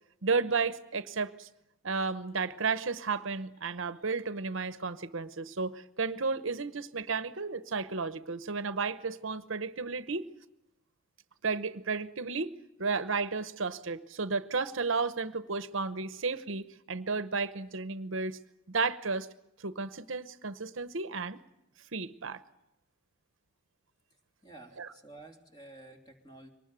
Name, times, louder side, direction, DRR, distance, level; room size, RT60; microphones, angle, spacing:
voice 1, 0.2-1.5 1.8-10.3 11.4-12.5 12.8-18.4 18.7-19.3 19.6-21.4 21.9-22.4 24.8-24.9, right 4 dB, 65° right, 13 dB, 0.9 m, -33 dB
voice 2, 24.4-26.5, right 2 dB, 20° left, 3 dB, 3.2 m, -51 dB
24.0 x 20.0 x 9.2 m, 0.86 s
head